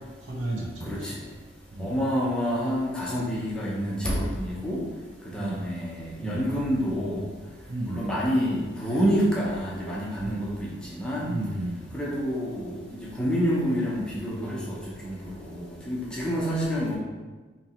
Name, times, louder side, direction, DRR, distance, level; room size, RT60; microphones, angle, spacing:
voice 1, 0.2-1.2 1.7-1.9 5.3-5.6 6.2-6.4 7.7-8.2 10.2-10.4 11.3-12.0, right 1 dB, 80° right, -4 dB, 1.0 m, -33 dB
voice 2, 1.8-4.8 5.3-7.3 7.9-11.4 11.9-14.8 15.0-17.0, equal, 5° left, -6 dB, 0.7 m, -28 dB
3.0 x 2.8 x 4.2 m, 1.3 s
head